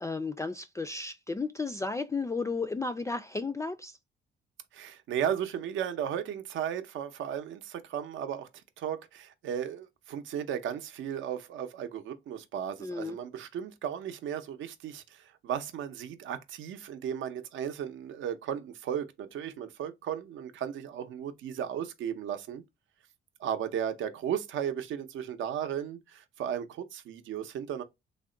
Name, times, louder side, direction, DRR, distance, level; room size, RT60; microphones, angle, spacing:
voice 1, 0.0-3.9 12.8-13.2, left 3 dB, 15° left, 0.3 m, -33 dB
voice 2, 4.7-8.5 8.8-22.6 23.4-27.8, right 9 dB, 75° right, 0.6 m, -35 dB
3.5 x 2.1 x 3.7 m
cardioid pair, 90°, 20 cm